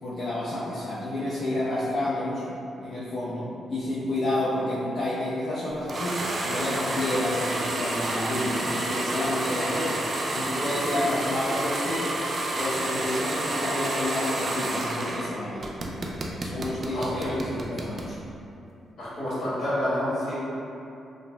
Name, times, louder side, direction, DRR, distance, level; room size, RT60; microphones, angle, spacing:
voice 1, 0.0-2.5 2.8-6.2 6.4-10.0 10.3-12.1 12.6-15.7 16.4-18.2, left 1 dB, 45° left, -10 dB, 0.5 m, -29 dB
sound 1, 5.9-15.3 15.6-18.1, right 1 dB, 45° right, 0.3 m, -29 dB
voice 2, 16.9-17.3 19.0-20.3, equal, 65° left, -11 dB, 1.4 m, -28 dB
2.6 x 2.0 x 3.2 m, 2.7 s
cardioid pair, 95°, 0 cm